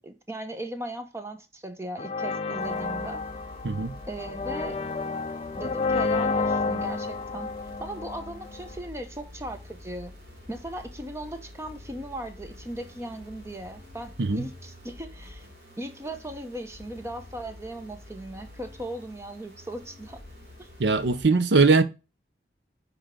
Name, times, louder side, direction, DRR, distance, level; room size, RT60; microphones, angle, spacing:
voice 1, 0.0-3.2 4.1-4.8 5.6-7.5 7.8-10.1 10.5-15.5 15.8-20.2 20.6-20.7, right 1 dB, 15° right, 0.7 m, -38 dB
sound 1, 2.0-8.7, left 4 dB, 35° left, 0.4 m, -30 dB
sound 2, 2.6-21.3, left 1 dB, 55° right, 2.4 m, -47 dB
voice 2, 3.6-4.0 14.2-14.4 20.8-21.8, right 4 dB, 80° right, 0.7 m, -21 dB
9.9 x 3.3 x 3.6 m
head